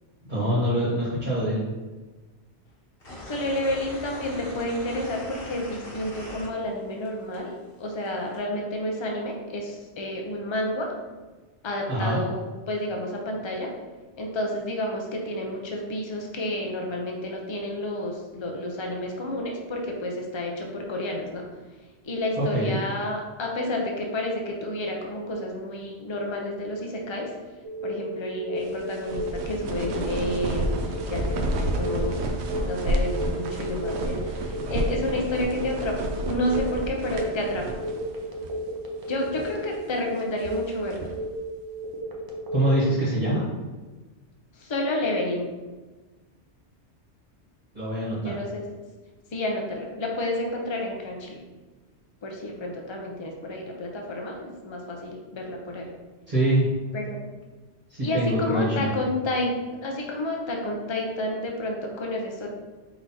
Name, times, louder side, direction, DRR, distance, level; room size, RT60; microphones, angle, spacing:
voice 1, 0.3-1.6 11.9-12.2 22.4-22.8 42.5-43.4 47.7-48.4 56.3-56.6 58.0-58.9, right 1 dB, 45° right, -9 dB, 1.4 m, -24 dB
sound 1, 3.0-7.1 7.3-8.4, left 1 dB, 55° left, 1.4 m, -40 dB
voice 2, 3.2-10.9 11.6-13.7 14.2-21.4 22.0-27.3 27.8-37.8 39.1-41.1 44.6-45.5 48.2-48.7 49.3-51.4 52.2-55.9 56.9-57.3 58.0-59.5 59.8-62.5, left 1 dB, 30° left, 1 dB, 0.6 m, -30 dB
Telephone, 27.6-42.9, equal, 30° right, 0.5 m, -34 dB
sound 2, 28.6-38.1 38.4-38.5 39.1-39.6 40.2-41.3, right 1 dB, 75° right, 0.8 m, -30 dB
4.8 x 3.9 x 2.8 m, 1.3 s
omnidirectional pair, 1.2 m